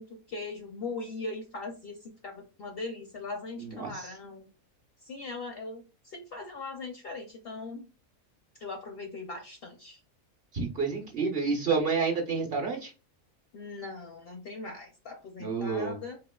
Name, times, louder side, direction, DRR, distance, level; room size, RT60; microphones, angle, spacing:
voice 1, 0.0-4.5 5.0-7.9 8.6-10.0 13.5-16.2, left 3 dB, 60° left, 3 dB, 0.6 m, -40 dB
voice 2, 3.7-4.1 10.5-12.9 15.4-15.9, right 4 dB, 55° right, 2 dB, 0.8 m, -29 dB
4.2 x 2.8 x 2.2 m, 0.32 s
omnidirectional pair, 1.5 m